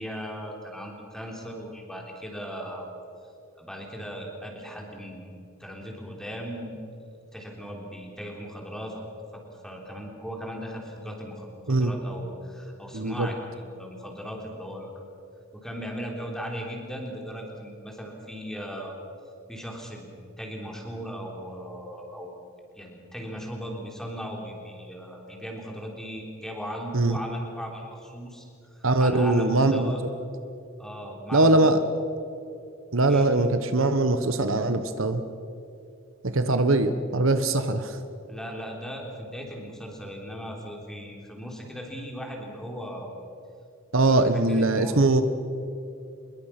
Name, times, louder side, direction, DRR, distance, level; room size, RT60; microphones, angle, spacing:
voice 1, 0.0-2.9 3.5-6.8 7.3-9.0 9.3-15.1 15.5-19.0 19.5-20.1 20.4-22.3 22.8-30.0 30.8-31.6 33.1-33.3 38.3-43.1 44.0-44.2 44.5-45.0, equal, ahead, 0 dB, 3.7 m, -38 dB
voice 2, 12.9-13.3 26.9-27.2 28.8-29.9 31.3-31.8 32.9-35.2 36.2-38.0 43.9-45.2, right 2 dB, 65° right, 9 dB, 1.1 m, -22 dB
25.0 x 22.0 x 6.0 m, 2.6 s
head